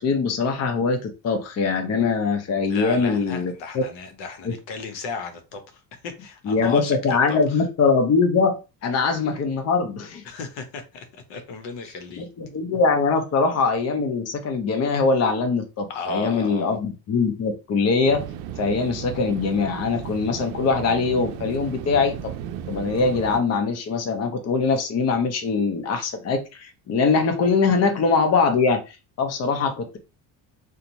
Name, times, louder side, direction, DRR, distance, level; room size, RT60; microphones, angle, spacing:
voice 1, 0.0-3.8 4.4-4.5 6.4-10.2 12.2-18.2 18.6-22.3 22.7-30.0, left 4 dB, 35° left, 0.6 m, -22 dB
voice 2, 2.7-7.4 10.2-12.3 15.9-16.8, left 4 dB, 70° left, 0.9 m, -35 dB
sound 1, 18.0-23.4, right 9 dB, 75° right, 0.5 m, -35 dB
2.9 x 2.2 x 2.6 m
cardioid pair, 115°, 45 cm